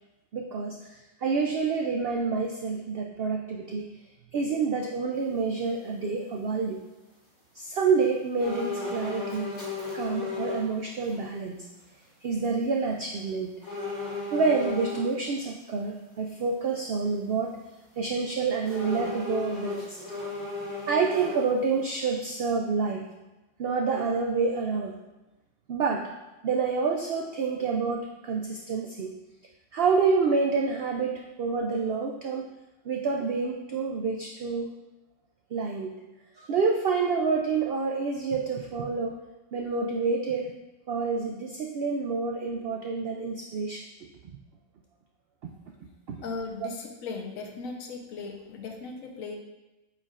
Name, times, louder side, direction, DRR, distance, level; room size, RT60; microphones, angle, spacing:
voice 1, 0.3-3.9 4.3-6.8 7.5-9.5 9.9-11.7 12.2-13.5 14.3-17.6 18.0-20.0 20.9-23.1 23.6-24.9 25.7-26.1 26.4-29.1 29.7-32.5 32.8-34.7 35.5-35.9 36.4-39.2 39.5-40.5 40.9-43.9 45.4-45.5 46.1-46.2, right 4 dB, 85° right, 2 dB, 0.5 m, -28 dB
sound 1, 8.4-10.7 11.1-11.2 13.6-15.1 18.6-21.7 22.1-22.2, left 3 dB, 30° left, 2.4 m, -34 dB
voice 2, 46.2-49.3, left 4 dB, 65° left, 1 dB, 1.2 m, -37 dB
8.4 x 4.7 x 2.4 m, 1.0 s
omnidirectional pair, 1.6 m